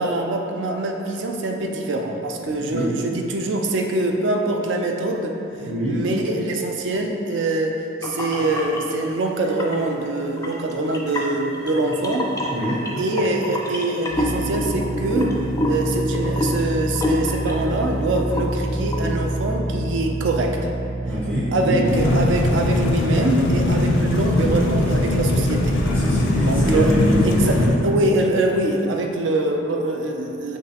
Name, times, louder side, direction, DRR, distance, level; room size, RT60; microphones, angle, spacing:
voice 1, 0.0-5.4 5.9-12.3 13.0-20.6 21.5-25.8 26.4-27.0 27.2-30.6, right 2 dB, 70° right, 3 dB, 0.4 m, -24 dB
voice 2, 2.4-2.9 5.6-6.0 12.5-12.8 21.1-22.2 23.7-24.0 25.8-27.7, equal, 30° right, -9 dB, 0.7 m, -24 dB
sound 1, 8.0-8.8 9.4-9.9 10.4-17.9 18.2-18.6 18.9-19.1, left 1 dB, 20° left, 0.4 m, -27 dB
sound 2, 14.1-26.5, right 1 dB, 50° right, 1.3 m, -29 dB
sound 3, 21.8-27.7, left 1 dB, 70° left, 0.5 m, -21 dB
5.9 x 3.1 x 2.9 m, 2.8 s
head